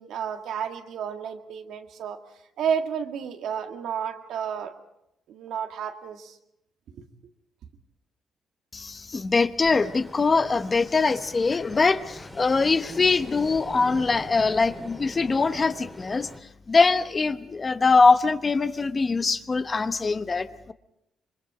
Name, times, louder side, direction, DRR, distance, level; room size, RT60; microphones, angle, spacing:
voice 1, 0.0-2.2 2.6-4.7 5.3-6.4 6.9-7.0, right 7 dB, 80° right, 5 dB, 2.0 m, -31 dB
voice 2, 8.7-16.3 16.7-20.7, left 4 dB, 30° left, 11 dB, 1.0 m, -22 dB
Ocean, 9.6-16.4, left 1 dB, 5° left, 2.5 m, -43 dB
26.5 x 23.0 x 5.0 m, 0.80 s
cardioid pair, 90°, 0 cm